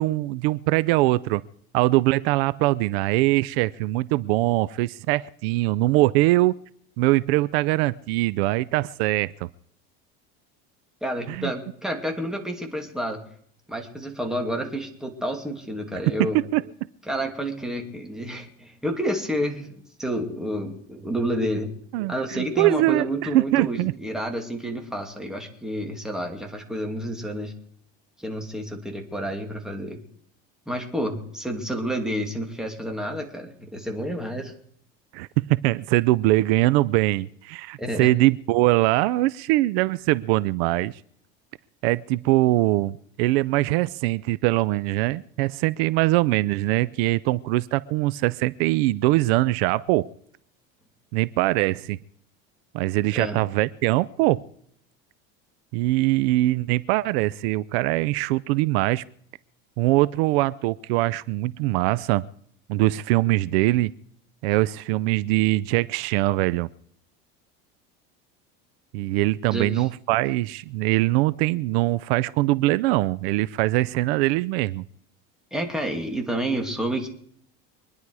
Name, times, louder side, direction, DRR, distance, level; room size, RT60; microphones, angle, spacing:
voice 1, 0.0-1.4 1.7-6.6 7.0-9.5 11.3-11.5 16.1-16.6 21.9-23.9 35.1-41.0 41.8-50.1 51.1-52.0 52.7-54.4 55.7-59.0 59.8-62.3 62.7-63.9 64.4-66.7 68.9-74.9, right 18 dB, 75° right, 19 dB, 0.6 m, -22 dB
voice 2, 11.0-13.2 13.7-16.4 17.1-21.7 22.1-27.5 28.2-30.0 30.7-34.5 37.8-38.1 53.1-53.4 69.5-69.9 75.5-77.1, equal, ahead, 2 dB, 2.5 m, -29 dB
24.0 x 10.5 x 4.8 m, 0.66 s
cardioid pair, 140°, 30 cm